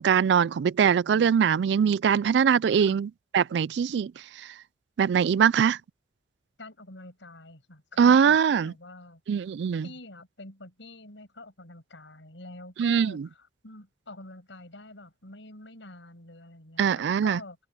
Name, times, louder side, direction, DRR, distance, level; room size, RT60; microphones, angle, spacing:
voice 1, 0.0-4.1 4.4-4.5 5.0-5.8 8.0-8.7 9.3-9.9 12.8-13.3 16.8-17.4, right 7 dB, 70° right, 0.3 m, -22 dB
voice 2, 6.6-9.2 9.8-17.6, left 2 dB, 85° left, 6.4 m, -46 dB
open air
head